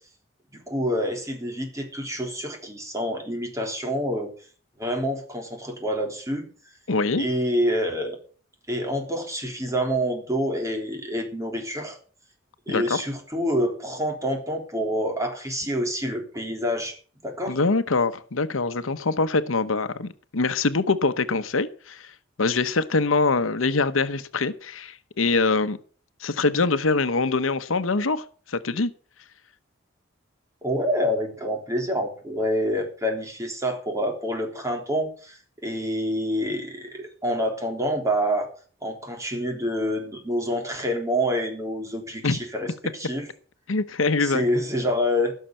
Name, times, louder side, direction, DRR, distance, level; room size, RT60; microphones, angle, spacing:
voice 1, 0.5-4.3 4.8-6.5 7.1-8.2 8.7-12.0 12.7-17.0 17.2-17.6 30.6-38.5 38.8-43.3 44.2-45.3, equal, 15° right, 3.4 m, -27 dB
voice 2, 6.9-7.2 12.7-13.0 17.5-22.1 22.4-25.8 26.2-28.9 42.2-42.4 43.7-44.4, left 3 dB, 85° left, 0.9 m, -24 dB
16.0 x 6.6 x 7.7 m
head